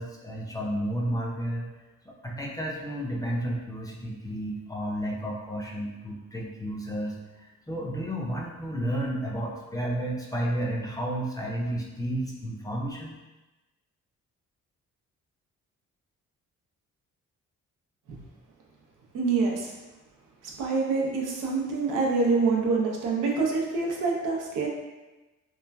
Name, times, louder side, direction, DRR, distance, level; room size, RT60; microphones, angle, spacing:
voice 1, 0.0-1.7 2.1-13.2, right 1 dB, 10° left, -3 dB, 0.4 m, -32 dB
voice 2, 19.1-19.7 20.6-24.7, right 4 dB, 90° right, -1 dB, 0.6 m, -26 dB
3.0 x 2.3 x 2.2 m, 1.1 s
cardioid pair, 80°, 31 cm